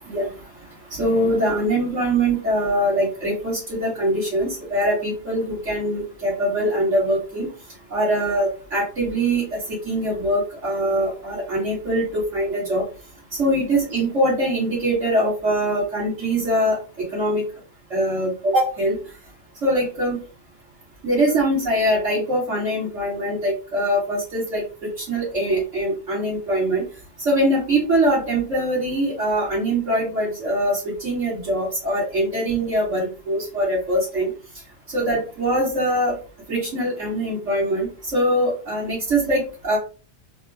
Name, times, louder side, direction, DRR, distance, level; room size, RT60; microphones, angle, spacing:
voice 1, 0.9-7.5 7.9-12.8 13.4-17.4 17.9-19.0 19.6-20.2 21.0-26.8 27.2-34.3 34.9-36.1 36.5-39.8, right 1 dB, 70° right, -9 dB, 2.6 m, -22 dB
4.8 x 2.3 x 3.5 m, 0.34 s
omnidirectional pair, 1.3 m